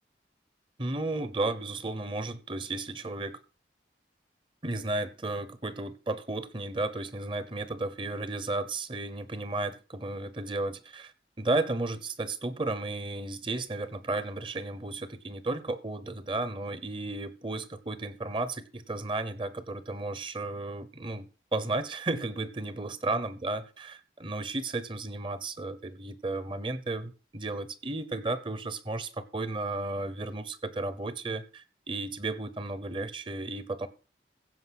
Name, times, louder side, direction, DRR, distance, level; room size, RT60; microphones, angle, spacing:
voice 1, 0.8-3.4 4.6-11.1 11.4-33.9, right 2 dB, 30° right, 0.9 m, -33 dB
15.5 x 5.3 x 5.9 m
head